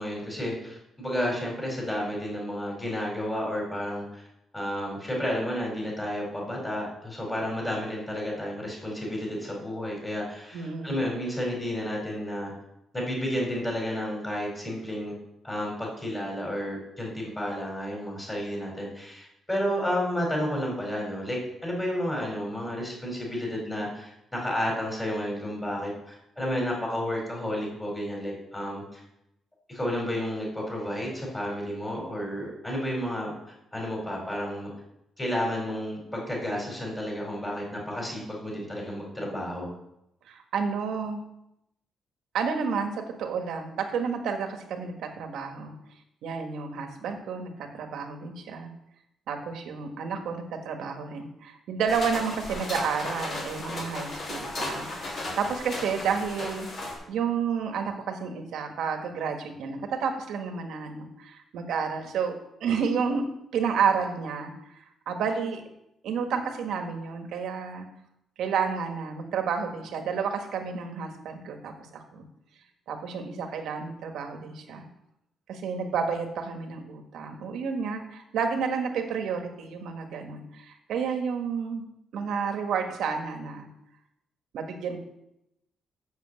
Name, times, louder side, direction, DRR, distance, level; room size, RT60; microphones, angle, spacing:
voice 1, 0.0-4.2 4.5-12.5 12.9-15.1 15.4-29.0 29.7-33.3 33.7-34.7 35.2-39.7, equal, 15° left, -2 dB, 4.2 m, -31 dB
voice 2, 10.5-11.0 40.3-41.2 42.3-45.7 46.2-48.7 49.3-62.3 62.6-63.2 63.5-65.6 66.0-67.8 68.4-72.2 72.9-74.8 75.5-81.8 82.1-83.7 84.5-85.0, right 6 dB, 80° right, 5 dB, 1.5 m, -31 dB
sound 1, 51.9-56.9, left 2 dB, 50° left, 3.9 m, -35 dB
7.8 x 7.1 x 7.6 m, 0.83 s
cardioid pair, 150°, 0 cm